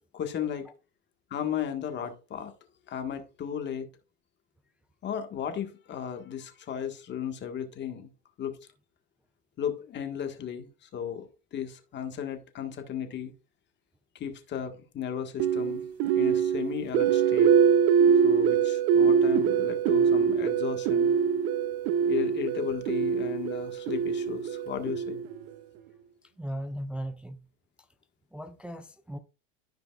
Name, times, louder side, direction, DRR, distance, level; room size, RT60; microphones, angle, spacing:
voice 1, 0.1-0.7 1.3-2.5 2.9-3.9 5.0-8.1 8.4-8.6 9.6-11.3 11.5-13.3 14.2-15.8 16.1-17.5 18.2-21.1 22.1-25.2, left 9 dB, 30° left, 1.7 m, -35 dB
sound 1, 15.4-25.5, right 7 dB, 45° right, 0.7 m, -24 dB
voice 2, 26.4-27.4 28.3-29.2, right 1 dB, 5° right, 0.4 m, -37 dB
14.0 x 5.1 x 2.4 m
supercardioid pair, 130°, 35 cm